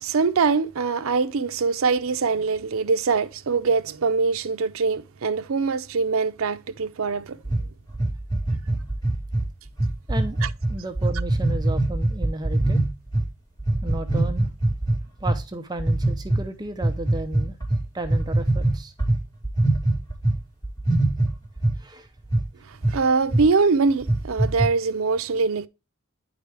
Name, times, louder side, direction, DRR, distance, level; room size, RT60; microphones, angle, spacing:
voice 1, 0.0-7.4 10.4-10.5 22.9-25.7, right 4 dB, 80° right, 0.5 m, -23 dB
sound 1, 7.4-13.3 13.6-15.4 15.8-16.4 16.8-20.4 20.6-21.8 22.3-22.4 22.8-23.0 23.3-23.4 23.9-24.7, right 1 dB, 20° left, 2.8 m, -22 dB
voice 2, 10.7-12.8 13.8-14.5 15.2-17.6 17.9-18.9 21.8-22.1, right 1 dB, 20° right, 0.6 m, -33 dB
9.5 x 4.8 x 3.3 m
head